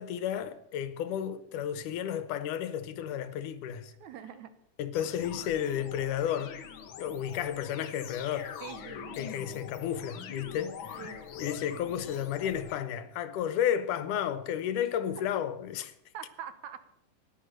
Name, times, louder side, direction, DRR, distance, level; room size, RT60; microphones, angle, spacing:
voice 1, 0.0-3.9 4.8-6.6 7.0-8.5 9.2-11.0 11.4-15.9, left 9 dB, 85° left, 2.5 m, -32 dB
voice 2, 3.9-4.5 8.6-9.2 11.0-11.2 15.2-15.3 16.1-16.8, right 9 dB, 70° right, 2.2 m, -44 dB
sound 1, 4.9-12.8, left 7 dB, 60° left, 1.4 m, -44 dB
17.0 x 10.5 x 6.7 m
omnidirectional pair, 3.6 m